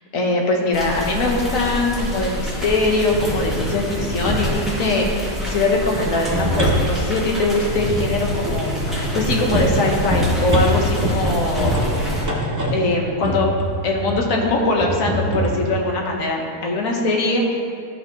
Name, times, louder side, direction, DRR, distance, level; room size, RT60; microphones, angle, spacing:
voice 1, 0.1-12.1 12.7-13.6 13.8-17.6, left 2 dB, 60° left, 0 dB, 1.2 m, -21 dB
sound 1, 0.7-12.2, equal, ahead, 1.6 m, -28 dB
sound 2, 3.1-4.7 5.8-14.3 14.8-15.6, equal, 30° right, 0.3 m, -24 dB
12.5 x 4.4 x 2.8 m, 2.4 s
omnidirectional pair, 1.7 m